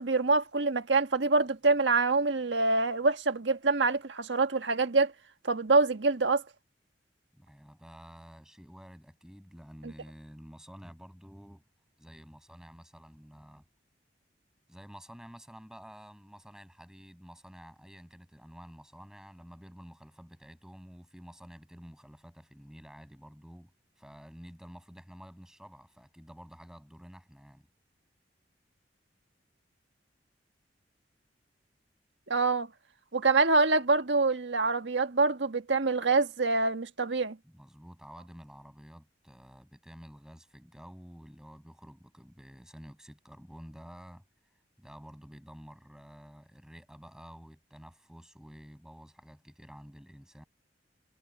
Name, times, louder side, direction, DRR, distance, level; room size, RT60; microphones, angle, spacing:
voice 1, 0.0-5.1 5.4-6.4 9.8-9.9 32.3-32.7 33.1-37.4, right 3 dB, 85° right, 1.6 m, -26 dB
voice 2, 7.3-11.7 12.0-13.6 14.7-23.7 24.0-27.7 37.4-44.2 44.8-50.4, equal, 5° right, 6.7 m, -50 dB
head